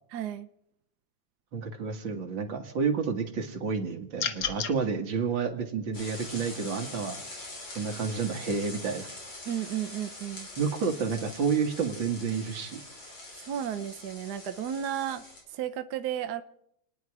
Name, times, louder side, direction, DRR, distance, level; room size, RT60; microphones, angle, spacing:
voice 1, 0.1-0.5 9.4-10.5 13.4-16.4, right 10 dB, 65° right, 9 dB, 1.3 m, -33 dB
voice 2, 1.5-7.2 7.8-9.1 10.6-12.8, right 5 dB, 85° right, 4 dB, 2.4 m, -30 dB
sound 1, 4.2-4.7, left 8 dB, 55° left, 1.3 m, -30 dB
sound 2, 5.9-15.4, left 2 dB, 80° left, 4.5 m, -44 dB
30.0 x 10.0 x 4.8 m, 0.74 s
omnidirectional pair, 2.0 m